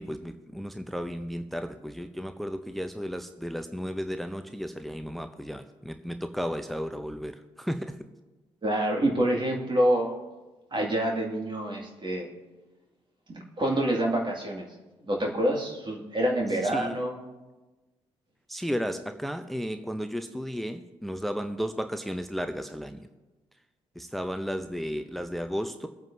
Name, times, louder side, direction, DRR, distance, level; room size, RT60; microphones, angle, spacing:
voice 1, 0.0-8.0 16.6-17.0 18.5-23.1 24.0-25.9, equal, ahead, 8 dB, 0.7 m, -34 dB
voice 2, 8.6-10.1 10.7-12.3 13.3-14.7 15.1-17.2, right 1 dB, 30° right, 0 dB, 2.3 m, -27 dB
25.0 x 9.0 x 2.8 m, 1.2 s
figure-of-eight pair, 45°, 15 cm